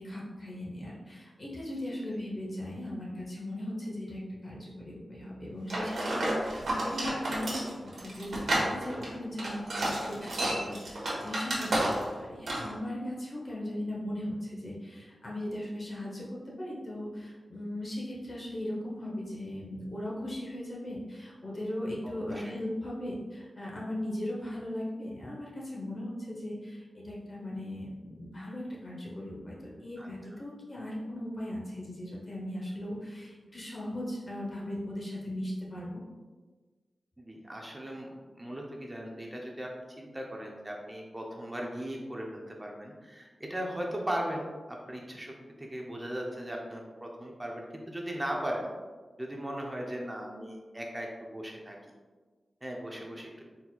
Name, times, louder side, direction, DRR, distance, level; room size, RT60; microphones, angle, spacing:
voice 1, 0.0-16.3 16.6-36.0, left 1 dB, 35° left, -4 dB, 0.9 m, -38 dB
sound 1, 5.7-12.2 12.5-12.7, right 1 dB, 85° right, 1.2 m, -31 dB
voice 2, 22.0-22.5 30.0-30.4 37.2-39.7 40.0-48.7 49.2-51.8 52.6-53.4, equal, 15° right, -1 dB, 0.6 m, -38 dB
4.3 x 4.1 x 2.3 m, 1.3 s
wide cardioid pair, 135°, 0 cm